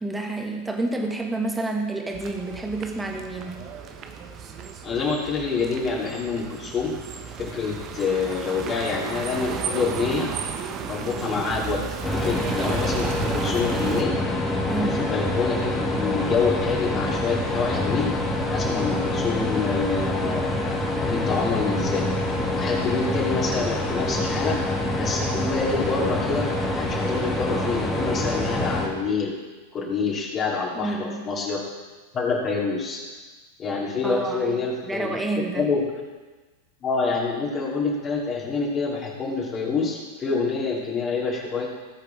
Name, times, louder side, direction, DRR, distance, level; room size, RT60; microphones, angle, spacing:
voice 1, 0.0-3.6 14.7-15.0 30.7-31.3 34.0-34.6 34.8-35.7, right 2 dB, 10° right, 2 dB, 1.7 m, -29 dB
sound 1, 2.1-14.0, right 6 dB, 30° right, 1.1 m, -34 dB
voice 2, 4.8-7.0 7.5-10.3 10.8-11.8 12.2-14.1 14.8-18.1 18.5-20.5 21.1-22.0 22.6-24.6 24.9-29.3 29.7-31.6 32.1-33.0 33.6-35.1 35.5-35.9 36.8-41.7, left 4 dB, 25° left, -5 dB, 3.1 m, -27 dB
sound 2, 12.0-28.9, left 1 dB, 10° left, 2.1 m, -26 dB
19.5 x 8.1 x 3.5 m, 1.3 s
figure-of-eight pair, 90°, 0 cm